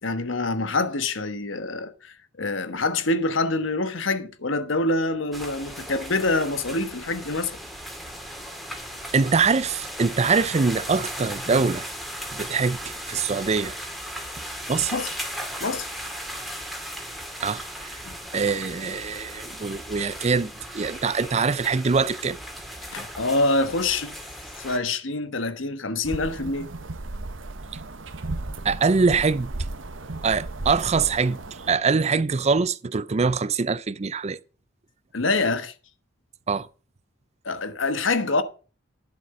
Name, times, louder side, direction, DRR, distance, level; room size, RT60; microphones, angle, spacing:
voice 1, 0.0-7.5 14.2-14.3 14.9-15.1 15.6-15.9 18.0-18.2 22.8-24.2 24.6-26.7 35.1-35.7 37.4-38.4, left 2 dB, 85° left, 1.3 m, -26 dB
sound 1, 5.3-24.8, equal, ahead, 2.2 m, -37 dB
voice 2, 9.1-11.9 12.3-12.8 13.1-13.8 14.7-14.9 17.4-17.6 18.3-22.4 28.6-29.5 30.2-31.4 31.6-34.4 36.5-36.7, right 4 dB, 35° right, 0.5 m, -23 dB
sound 2, 26.0-31.8, right 2 dB, 85° right, 1.2 m, -35 dB
11.0 x 7.5 x 5.4 m
head